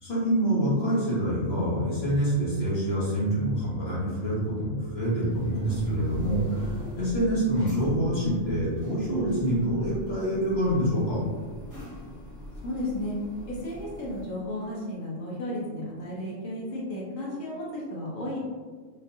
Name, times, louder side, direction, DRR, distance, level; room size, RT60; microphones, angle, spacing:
voice 1, 0.0-11.2, right 1 dB, 55° left, -9 dB, 1.4 m, -26 dB
sound 1, 5.3-14.2, equal, 20° left, 0.7 m, -42 dB
voice 2, 12.6-13.2 13.5-18.4, left 1 dB, 90° left, -5 dB, 1.3 m, -33 dB
3.8 x 2.6 x 2.5 m, 1.5 s
omnidirectional pair, 1.3 m